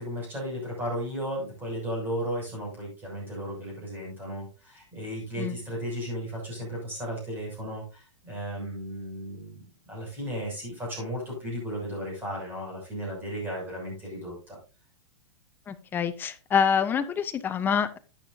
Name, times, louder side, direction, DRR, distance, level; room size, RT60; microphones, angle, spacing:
voice 1, 0.0-14.6, equal, 10° right, -3 dB, 6.5 m, -35 dB
voice 2, 15.7-18.0, left 7 dB, 15° left, 10 dB, 0.5 m, -26 dB
12.0 x 8.6 x 2.7 m, 0.32 s
supercardioid pair, 160°, 16 cm